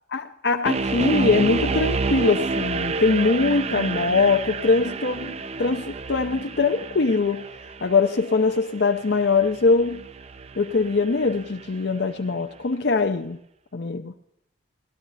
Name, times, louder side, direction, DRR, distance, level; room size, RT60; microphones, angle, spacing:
voice 1, 0.1-7.5 7.8-10.0 10.6-13.4 13.7-14.1, left 4 dB, 60° left, 0.7 m, -22 dB
sound 1, 0.7-11.7, right 4 dB, 35° right, 0.4 m, -29 dB
18.0 x 13.5 x 4.1 m
head